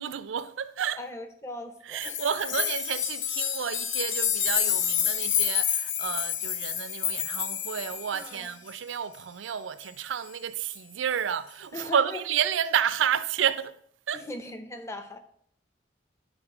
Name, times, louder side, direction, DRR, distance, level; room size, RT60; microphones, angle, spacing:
voice 1, 0.0-1.1 1.8-13.7 14.1-14.3, right 8 dB, 80° right, 0.4 m, -30 dB
voice 2, 1.0-2.2 2.6-2.7 8.1-8.5 11.7-12.2 14.1-15.2, left 1 dB, 15° left, 0.6 m, -39 dB
sound 1, 2.0-8.5 10.7-10.8, left 9 dB, 80° left, 0.7 m, -28 dB
10.0 x 4.0 x 4.8 m
head